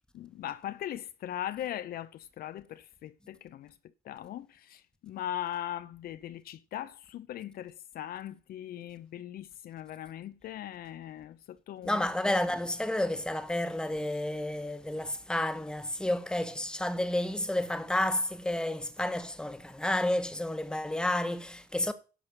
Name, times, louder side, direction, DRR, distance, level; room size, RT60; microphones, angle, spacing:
voice 1, 0.1-3.7 4.0-12.0, left 11 dB, 60° left, 0.8 m, -39 dB
voice 2, 11.8-21.9, left 1 dB, 5° left, 1.4 m, -31 dB
11.0 x 6.2 x 6.7 m
cardioid pair, 110°, 17 cm